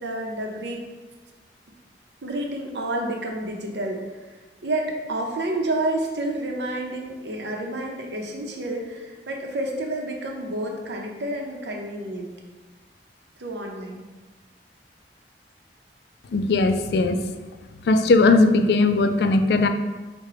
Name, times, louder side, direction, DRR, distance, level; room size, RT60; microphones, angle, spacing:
voice 1, 0.0-0.8 2.2-4.0 4.6-12.3 13.4-14.1, right 1 dB, 80° right, 1 dB, 0.7 m, -29 dB
voice 2, 16.3-17.3 17.8-19.7, left 3 dB, 65° left, 8 dB, 0.3 m, -18 dB
4.8 x 2.2 x 4.6 m, 1.3 s
head